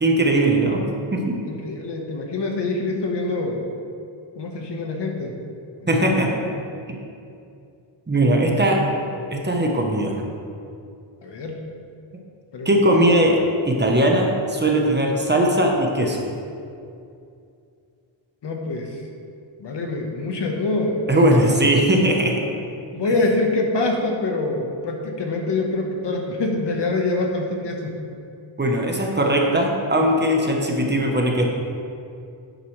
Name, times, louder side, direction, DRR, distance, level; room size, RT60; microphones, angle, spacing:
voice 1, 0.0-0.8 1.1-1.4 5.9-6.3 8.1-8.9 9.3-10.2 12.6-16.3 21.1-22.4 28.6-31.4, right 1 dB, 20° right, 0 dB, 1.1 m, -19 dB
voice 2, 1.5-3.6 4.4-5.3 5.8-6.2 11.2-11.6 12.5-12.8 18.4-19.0 19.6-21.0 21.4-21.7 22.9-27.9, left 2 dB, 55° left, 1 dB, 1.4 m, -25 dB
11.0 x 9.1 x 3.3 m, 2.5 s
wide cardioid pair, 135°, 50 cm